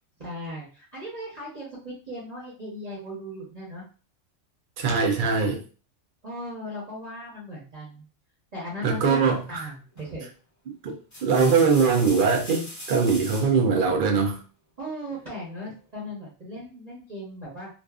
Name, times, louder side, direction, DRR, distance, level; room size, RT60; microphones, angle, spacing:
voice 1, 0.2-3.8 6.2-8.0 8.5-9.2 9.5-10.3 14.8-17.7, equal, 40° right, -6 dB, 0.9 m, -37 dB
voice 2, 4.8-5.6 8.8-9.7 10.7-11.0 11.2-14.4, right 5 dB, 55° right, 3 dB, 0.6 m, -22 dB
sound 1, 10.0-10.3 10.9-13.6 15.1-15.7, left 1 dB, 20° left, 0.5 m, -40 dB
2.5 x 2.4 x 2.3 m, 0.36 s
omnidirectional pair, 1.3 m